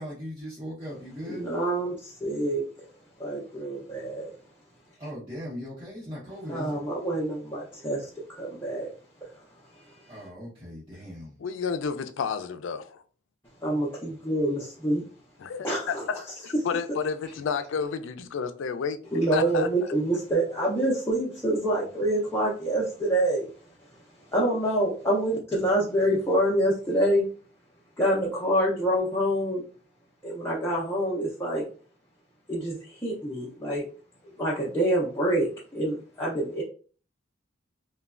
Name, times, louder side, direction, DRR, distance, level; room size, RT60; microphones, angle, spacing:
voice 1, 0.0-1.4 5.0-6.8 10.1-11.3, equal, 30° right, 0.9 m, -39 dB
voice 2, 1.3-2.9 3.2-4.3 6.5-8.9 9.9-10.3 13.6-15.0 15.6-16.0 19.1-23.5 24.3-27.2 28.0-29.6 30.2-31.6 32.5-33.8 34.4-36.6, right 1 dB, 10° left, 0.5 m, -26 dB
voice 3, 11.4-13.0 15.4-16.2 16.4-19.0 19.3-19.7, left 6 dB, 75° left, 0.3 m, -31 dB
3.1 x 2.2 x 2.4 m
head